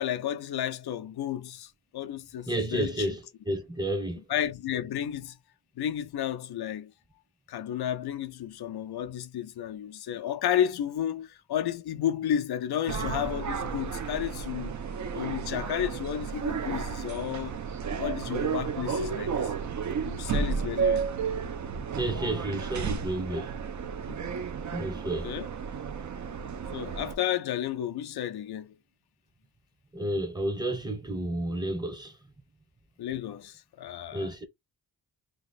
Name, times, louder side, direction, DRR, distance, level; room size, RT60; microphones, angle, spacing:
voice 1, 0.0-3.1 4.3-5.4 5.8-6.9 7.5-14.7 15.1-17.5 17.9-19.5 20.0-21.1 24.1-24.3 25.0-25.5 26.7-28.7 33.0-34.3, left 10 dB, 85° left, 0.5 m, -32 dB
voice 2, 2.5-4.2 22.0-23.5 24.7-25.3 29.9-32.1 34.1-34.4, right 1 dB, 10° right, 0.8 m, -31 dB
sound 1, 12.9-27.1, right 6 dB, 50° right, 0.6 m, -32 dB
2.9 x 2.8 x 3.9 m
wide cardioid pair, 110°, 38 cm